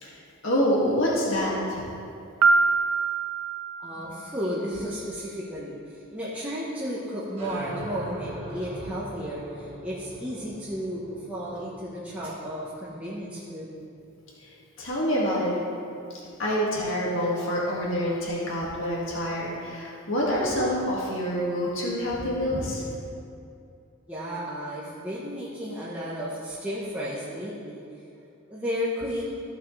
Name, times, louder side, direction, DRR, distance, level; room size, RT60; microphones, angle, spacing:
voice 1, 0.0-1.8 14.4-15.5 16.4-22.9, equal, 70° left, -6 dB, 2.0 m, -27 dB
Piano, 2.4-4.3, right 4 dB, 85° right, 0.5 m, -24 dB
voice 2, 3.8-13.8 24.1-27.8 28.5-29.3, equal, 5° right, -9 dB, 0.9 m, -33 dB
sound 1, 7.4-14.6, right 1 dB, 30° right, 1.8 m, -41 dB
15.0 x 5.9 x 3.3 m, 2.6 s
head